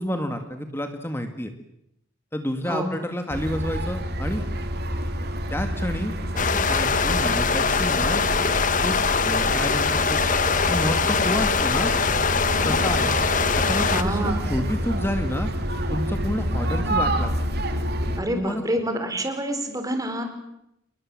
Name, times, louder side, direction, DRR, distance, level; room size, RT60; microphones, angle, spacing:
voice 1, 0.0-1.5 2.3-4.4 5.5-8.2 8.8-9.0 9.2-10.2 10.7-11.9 12.6-13.1 13.5-15.5 15.9-17.4 18.4-18.6, equal, 10° left, 6 dB, 1.9 m, -29 dB
sound 1, 3.3-18.2, equal, 55° right, 3.0 m, -28 dB
sound 2, 6.4-14.0, left 5 dB, 40° left, 1.3 m, -23 dB
voice 2, 12.5-12.9 13.9-14.5 18.2-20.4, right 1 dB, 20° right, 7 dB, 4.3 m, -28 dB
29.0 x 21.5 x 7.6 m, 0.80 s
head